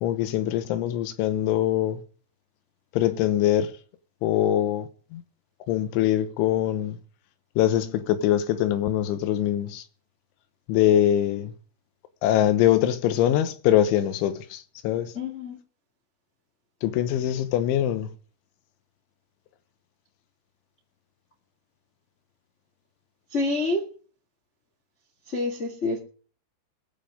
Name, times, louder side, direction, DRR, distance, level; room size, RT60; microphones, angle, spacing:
voice 1, 0.0-2.0 2.9-3.7 4.2-5.2 5.7-7.0 7.6-9.8 10.7-11.5 12.2-15.1 16.8-18.1, left 12 dB, 80° left, 3.4 m, -23 dB
voice 2, 15.1-15.6 23.3-23.8 25.3-26.0, left 2 dB, 45° left, 0.8 m, -27 dB
22.0 x 7.6 x 5.0 m
omnidirectional pair, 5.5 m